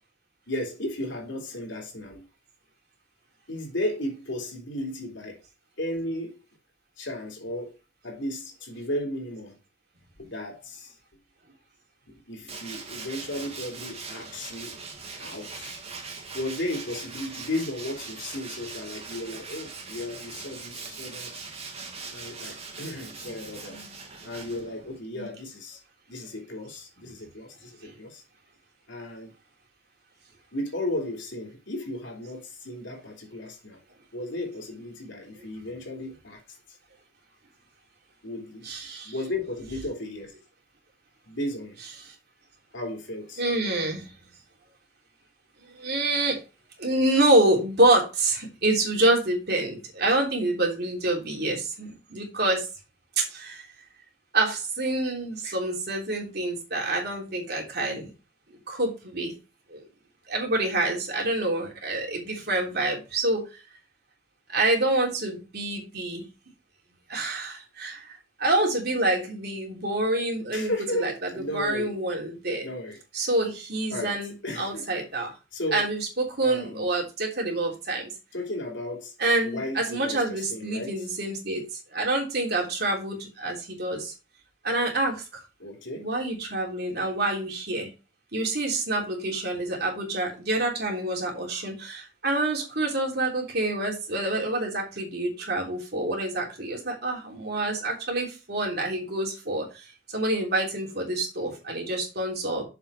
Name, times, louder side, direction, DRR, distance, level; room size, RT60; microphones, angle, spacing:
voice 1, 0.5-2.2 3.5-5.4 5.8-6.4 7.0-7.8 8.0-9.6 10.2-11.0 12.1-14.8 15.2-15.8 16.3-21.4 22.1-23.8 24.2-25.8 26.1-28.2 28.9-29.3 30.5-33.8 34.1-36.4 38.2-38.6 39.0-40.3 41.2-41.8 42.7-43.4 70.5-72.0 72.6-73.3 73.9-74.9 75.5-75.9 76.4-76.9 78.3-79.1 79.4-81.1 85.6-86.1, left 1 dB, 85° left, 3.2 m, -34 dB
Tools, 12.5-25.0, right 4 dB, 35° right, 1.9 m, -41 dB
voice 2, 23.7-24.0 24.4-24.7 25.1-25.3 27.8-27.9 38.6-39.3 39.7-39.8 41.8-42.1 43.4-44.1 45.6-46.4 46.8-52.7 53.2-53.6 54.3-58.1 58.7-59.3 59.7-59.8 60.3-63.6 64.5-66.3 67.1-72.6 73.1-75.3 75.7-78.1 79.2-81.6 81.9-84.1 84.6-85.4 86.0-87.9 88.3-102.6, right 2 dB, 60° right, 3.3 m, -27 dB
7.3 x 5.7 x 4.9 m
head